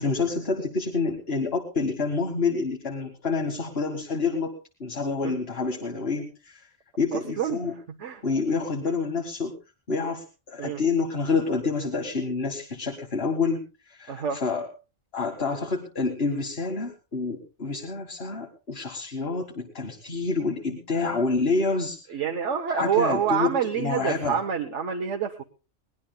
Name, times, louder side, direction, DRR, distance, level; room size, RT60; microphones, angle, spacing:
voice 1, 0.0-4.5 4.8-6.7 7.0-7.7 8.2-9.5 9.9-14.7 15.1-22.2 22.7-23.5 23.8-24.4, left 4 dB, 60° left, 3 dB, 2.1 m, -28 dB
voice 2, 7.1-7.7 8.0-8.2 10.6-10.8 14.1-14.4 22.1-25.4, right 7 dB, 85° right, 3 dB, 1.4 m, -27 dB
22.5 x 19.0 x 2.3 m, 0.33 s
omnidirectional pair, 1.2 m